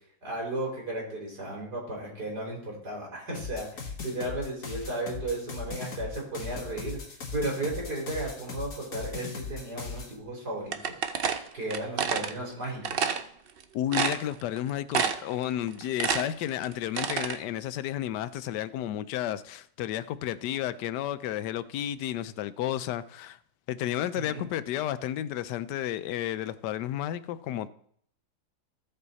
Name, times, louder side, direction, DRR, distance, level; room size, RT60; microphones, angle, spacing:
voice 1, 0.2-7.0 7.3-11.3 11.5-13.1 24.1-24.5, right 1 dB, 75° right, 4.3 m, -35 dB
sound 1, 3.3-10.1, left 5 dB, 55° left, 1.7 m, -38 dB
sound 2, 10.7-12.3 12.8-13.2 13.6-13.7 13.9-14.6 14.9-15.4 15.7-17.4, right 6 dB, 55° right, 0.6 m, -28 dB
voice 2, 13.7-23.4 23.7-27.7, left 12 dB, 90° left, 1.2 m, -32 dB
15.5 x 5.6 x 4.1 m
omnidirectional pair, 1.8 m